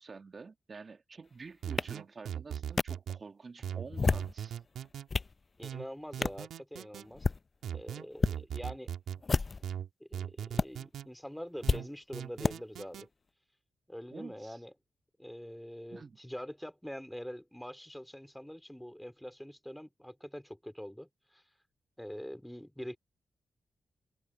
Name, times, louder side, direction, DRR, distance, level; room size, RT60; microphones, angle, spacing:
voice 1, 0.0-4.6 14.1-14.6 15.9-16.2, right 4 dB, 50° right, 2.0 m, -48 dB
sound 1, 1.6-3.2 3.6-5.1 5.6-7.1 7.6-9.2 9.6-11.1 11.6-13.1, right 9 dB, 80° right, 2.1 m, -39 dB
sound 2, 1.8-1.9 2.8-2.9 3.8-4.3 4.8-5.3 6.2-6.4 7.1-7.4 8.1-8.4 9.2-9.7 10.6-10.7 11.7-11.8 12.4-12.5, left 4 dB, 45° left, 0.5 m, -29 dB
voice 2, 5.6-7.3 7.7-8.9 10.0-13.1 13.9-14.7 15.2-21.4 22.0-23.0, equal, 5° left, 4.3 m, -44 dB
supercardioid pair, 40°, 0 cm